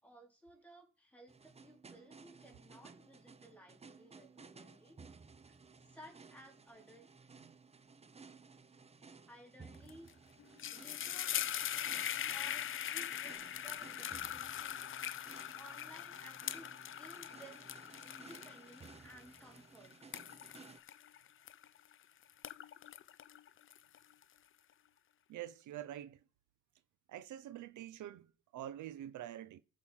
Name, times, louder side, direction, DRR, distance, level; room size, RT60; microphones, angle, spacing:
voice 1, 0.0-5.0 5.5-5.6 5.9-7.1 9.3-10.1 10.7-11.4 12.3-14.8 15.5-17.7 18.0-20.0, equal, 5° left, 3.7 m, -58 dB
sound 1, 1.3-20.8, right 4 dB, 20° right, 0.6 m, -58 dB
sound 2, 9.9-10.1 10.4-21.9 22.3-24.2, left 10 dB, 45° left, 0.5 m, -41 dB
voice 2, 25.3-26.2 27.1-29.6, right 12 dB, 75° right, 0.7 m, -46 dB
14.0 x 4.6 x 5.8 m
cardioid pair, 90°, 30 cm